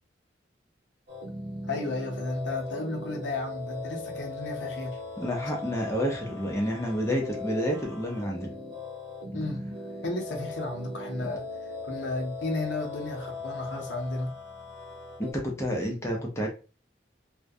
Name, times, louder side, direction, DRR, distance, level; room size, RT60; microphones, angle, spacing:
sound 1, 1.1-15.3, left 2 dB, 75° right, 0.7 m, -39 dB
voice 1, 1.7-5.0 9.3-9.6 10.0-11.4 11.8-14.3, left 2 dB, 80° left, 0.6 m, -33 dB
voice 2, 5.2-8.5 15.2-16.5, equal, 15° left, 0.6 m, -29 dB
2.2 x 2.1 x 2.6 m
head